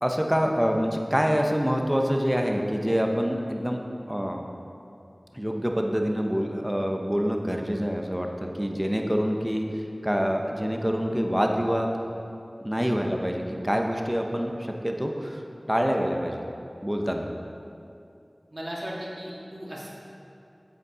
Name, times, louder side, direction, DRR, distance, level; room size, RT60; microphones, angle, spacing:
voice 1, 0.0-3.8 4.1-4.4 5.3-11.9 12.6-15.4 15.7-16.4 16.8-17.3, equal, 10° right, 2 dB, 0.9 m, -26 dB
voice 2, 18.5-19.9, equal, 45° right, -5 dB, 2.1 m, -36 dB
7.8 x 7.7 x 4.9 m, 2.6 s
wide cardioid pair, 45°, 0 cm